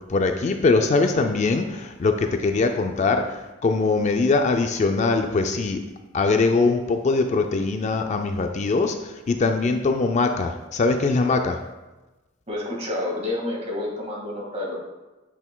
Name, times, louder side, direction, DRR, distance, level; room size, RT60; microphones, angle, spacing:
voice 1, 0.0-5.8 6.1-11.6, left 3 dB, 35° left, 5 dB, 0.4 m, -22 dB
voice 2, 12.5-14.8, left 1 dB, 35° right, -3 dB, 1.8 m, -29 dB
8.1 x 5.7 x 2.2 m, 1.1 s
head